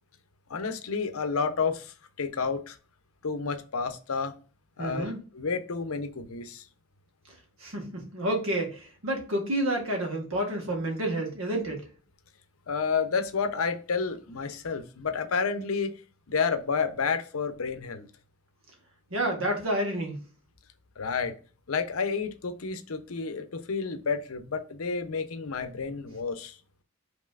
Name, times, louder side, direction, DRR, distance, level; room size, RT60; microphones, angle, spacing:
voice 1, 0.5-2.8 3.2-4.3 4.8-6.6 12.7-16.0 16.3-18.1 21.0-21.3 21.7-26.5, left 5 dB, 80° left, 0.7 m, -30 dB
voice 2, 4.8-5.2 7.6-11.8 19.1-20.2, right 1 dB, 70° right, 1.5 m, -29 dB
5.3 x 3.0 x 2.4 m
head